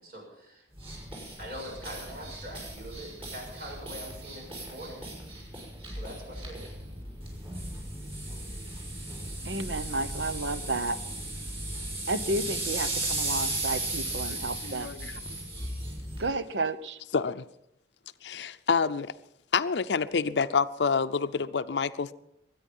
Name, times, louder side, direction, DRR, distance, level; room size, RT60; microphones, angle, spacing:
voice 1, 0.0-0.7 1.4-5.0 5.9-6.7, equal, 55° right, 0 dB, 6.8 m, -43 dB
sound 1, 0.8-16.3, right 2 dB, 30° right, 5.5 m, -36 dB
voice 2, 9.4-11.0 12.1-15.0 16.2-17.0, right 2 dB, 85° right, 13 dB, 0.9 m, -32 dB
voice 3, 14.6-15.1 17.1-17.4 18.2-19.1 19.5-22.1, left 5 dB, 75° left, 11 dB, 0.5 m, -28 dB
22.0 x 9.8 x 5.5 m, 0.80 s
head